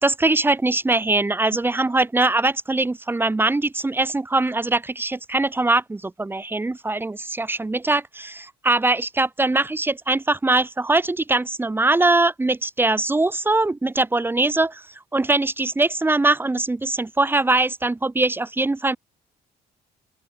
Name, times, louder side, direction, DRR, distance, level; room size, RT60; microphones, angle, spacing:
voice 1, 0.0-14.8 15.1-19.0, right 2 dB, 15° right, 0.9 m, -22 dB
open air
cardioid pair, 110°, 17 cm